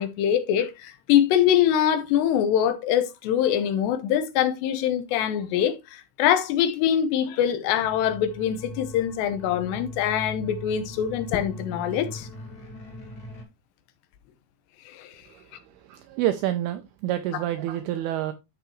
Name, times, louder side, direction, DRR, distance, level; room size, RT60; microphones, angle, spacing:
voice 1, 0.0-12.3 14.9-15.1, left 10 dB, 80° left, 2.9 m, -24 dB
sound 1, 7.8-13.4, left 1 dB, 30° left, 1.9 m, -40 dB
voice 2, 15.3-18.3, right 13 dB, 85° right, 2.2 m, -28 dB
13.0 x 4.6 x 3.1 m
omnidirectional pair, 5.1 m